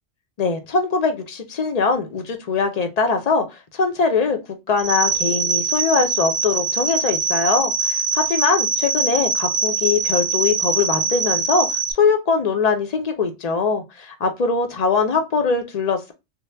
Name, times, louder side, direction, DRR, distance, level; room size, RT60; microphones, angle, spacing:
voice 1, 0.4-4.4 4.7-16.1, left 4 dB, 45° left, 6 dB, 0.6 m, -22 dB
sound 1, 4.8-11.9, right 4 dB, 90° right, 0.9 m, -23 dB
3.2 x 2.1 x 3.3 m, 0.24 s
omnidirectional pair, 1.1 m